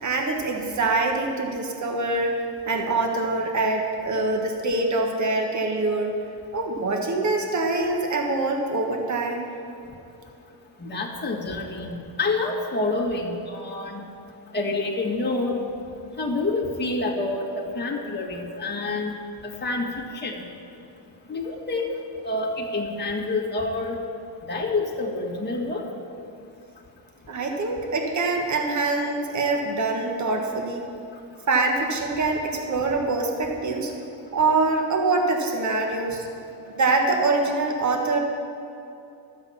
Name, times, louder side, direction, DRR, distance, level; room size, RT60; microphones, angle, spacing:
voice 1, 0.0-2.4 2.6-6.2 6.5-9.5 27.3-30.8 31.5-33.9 34.3-36.2 36.7-38.2, right 3 dB, 40° right, 2 dB, 1.6 m, -24 dB
voice 2, 10.8-14.1 14.5-15.6 16.2-19.1 19.4-20.4 21.3-21.9 22.2-24.0 24.5-25.8, left 2 dB, 25° left, -3 dB, 1.8 m, -27 dB
12.0 x 7.9 x 5.8 m, 2.8 s
cardioid pair, 95°, 44 cm